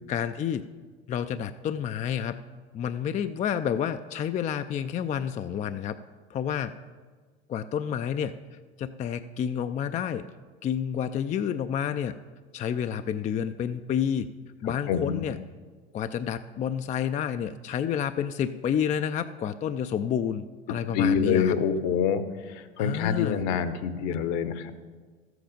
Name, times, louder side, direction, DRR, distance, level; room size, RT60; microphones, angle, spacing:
voice 1, 0.1-0.7 1.1-2.4 2.7-6.0 6.3-6.7 7.5-8.3 8.8-10.2 10.6-12.1 12.5-14.3 14.6-15.4 15.9-21.6 22.8-23.4, left 8 dB, 25° left, 10 dB, 0.4 m, -29 dB
voice 2, 14.9-15.2 20.9-22.2 22.5-24.7, left 7 dB, 55° left, 12 dB, 1.0 m, -26 dB
13.5 x 7.8 x 5.1 m, 1.5 s
hypercardioid pair, 85°, 31 cm